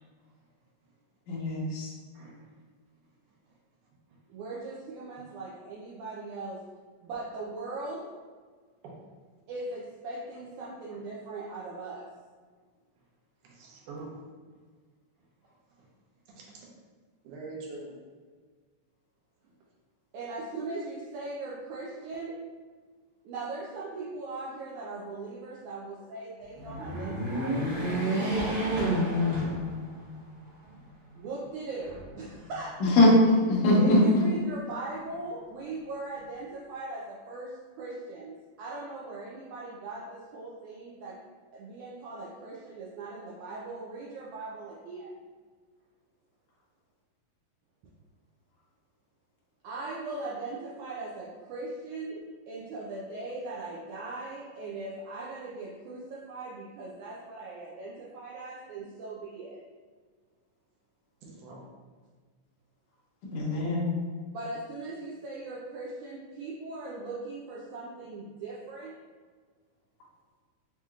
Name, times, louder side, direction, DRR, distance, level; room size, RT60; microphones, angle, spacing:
voice 1, 1.3-1.9 32.8-34.2 63.3-63.9, left 1 dB, 80° left, -5 dB, 1.5 m, -22 dB
voice 2, 2.1-2.5 8.8-9.0 13.4-14.2 16.3-16.6 17.2-17.9 61.2-61.6, right 3 dB, 75° right, -3 dB, 2.1 m, -44 dB
voice 3, 4.3-6.6 7.0-8.1 9.5-12.1 20.1-22.4 23.2-28.4 31.1-32.8 33.8-41.2 41.5-45.1 49.6-52.2 52.5-59.6 64.3-68.9, right 3 dB, 90° right, -6 dB, 1.6 m, -39 dB
sound 1, 26.5-30.1 30.6-30.7 31.8-32.6, equal, 55° right, 1.4 m, -29 dB
5.8 x 2.8 x 2.4 m, 1.5 s
omnidirectional pair, 4.1 m